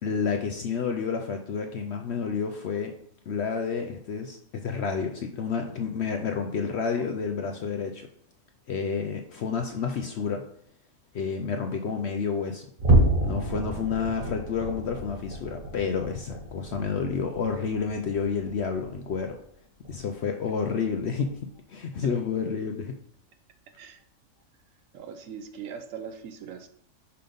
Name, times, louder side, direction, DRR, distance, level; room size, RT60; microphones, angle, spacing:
voice 1, 0.0-2.9 3.3-8.1 8.7-10.4 11.1-12.7 13.2-19.4 19.9-21.4 21.7-22.9, left 6 dB, 65° left, 4 dB, 0.7 m, -30 dB
sound 1, 12.8-19.5 19.8-20.1 20.5-20.7 21.2-21.4, right 2 dB, 35° right, 1.5 m, -29 dB
voice 2, 24.9-26.7, right 7 dB, 65° right, 8 dB, 0.9 m, -40 dB
5.6 x 3.9 x 5.1 m, 0.64 s
omnidirectional pair, 1.6 m